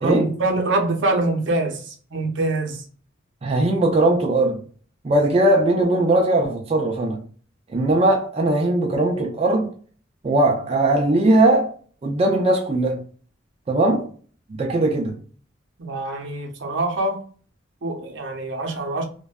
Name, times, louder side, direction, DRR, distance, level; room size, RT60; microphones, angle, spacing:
voice 1, 0.0-2.8 15.8-17.2 17.8-19.0, right 2 dB, 70° right, 0.7 m, -24 dB
voice 2, 3.4-4.6 5.0-7.2 7.7-9.7 10.2-11.7 12.0-13.0 13.7-14.1 14.6-15.2, right 2 dB, 30° right, 0.3 m, -19 dB
2.5 x 2.1 x 2.3 m
head